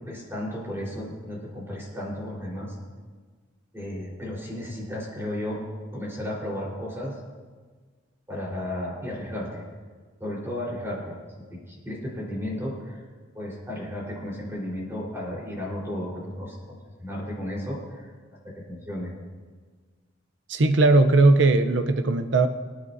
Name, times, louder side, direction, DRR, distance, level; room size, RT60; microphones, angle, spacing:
voice 1, 0.0-2.7 3.7-5.6 5.9-7.1 8.3-9.6 10.2-11.1 11.7-13.0 13.3-16.5 17.0-18.1 18.4-19.1, left 1 dB, 15° right, -4 dB, 4.2 m, -33 dB
voice 2, 20.5-22.5, right 2 dB, 65° right, 9 dB, 0.7 m, -18 dB
26.0 x 9.7 x 2.7 m, 1.5 s
head